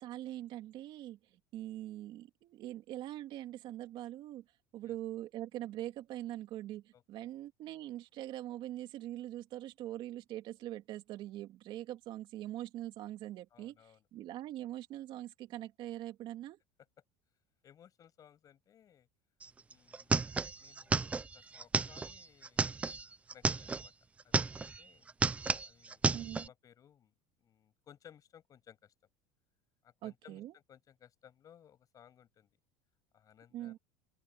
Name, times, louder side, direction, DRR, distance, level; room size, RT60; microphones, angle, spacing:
voice 1, 0.0-4.4 4.7-16.6 26.1-26.5 30.0-30.5 33.5-33.8, right 13 dB, 45° right, 2.8 m, -43 dB
voice 2, 6.9-7.3 13.5-14.1 17.6-19.1 19.7-20.2 20.6-22.7 23.3-23.9 24.2-25.0 25.6-28.9 29.8-32.5 33.1-33.8, left 9 dB, 30° left, 6.7 m, -61 dB
sound 1, 19.4-19.5 19.7-23.9 24.2-24.8 25.1-26.5, right 4 dB, 10° right, 0.4 m, -33 dB
open air
supercardioid pair, 140°, 11 cm